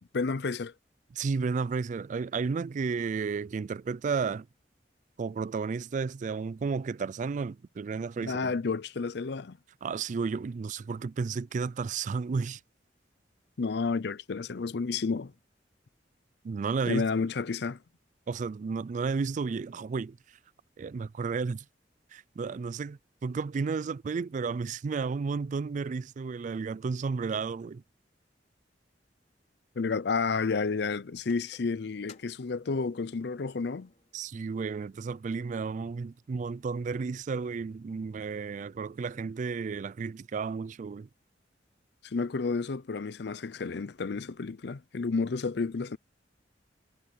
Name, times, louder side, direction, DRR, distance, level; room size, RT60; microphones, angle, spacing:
voice 1, 0.1-0.7 8.2-9.6 13.6-15.3 16.9-17.8 29.8-33.9 42.0-46.0, left 4 dB, 65° left, 0.6 m, -31 dB
voice 2, 1.1-4.5 5.2-8.6 9.8-12.6 16.4-17.0 18.3-20.2 20.8-21.6 22.1-27.8 34.1-41.1, right 5 dB, 45° right, 0.3 m, -32 dB
sound 1, 31.2-34.3 34.6-34.7 35.5-35.6 36.0-36.1 36.4-37.0, left 4 dB, 40° left, 4.4 m, -56 dB
head